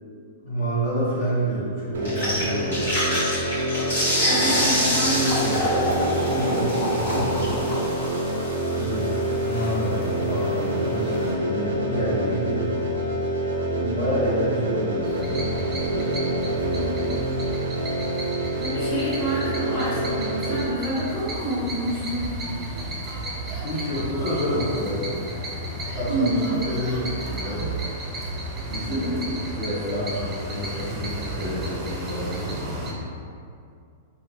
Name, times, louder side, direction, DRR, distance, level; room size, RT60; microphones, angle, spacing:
voice 1, 0.4-2.9 4.2-4.6 5.4-5.6 6.2-7.7 8.7-12.9 13.7-16.2 23.6-25.2 25.9-27.7 28.7-29.1 29.5-32.4, equal, 65° left, -11 dB, 1.5 m, -29 dB
sound 1, 1.9-20.6, right 1 dB, 85° right, 0.4 m, -27 dB
sound 2, 2.1-11.3, left 1 dB, 85° left, 1.5 m, -27 dB
voice 2, 4.2-5.5 13.7-14.1 16.6-17.0 18.5-22.3 26.1-26.5 28.9-29.2, right 1 dB, 40° left, -13 dB, 1.3 m, -28 dB
sound 3, 15.0-32.9, right 1 dB, 20° right, 0.5 m, -33 dB
3.9 x 2.4 x 2.2 m, 2.3 s
hypercardioid pair, 135°, 0 cm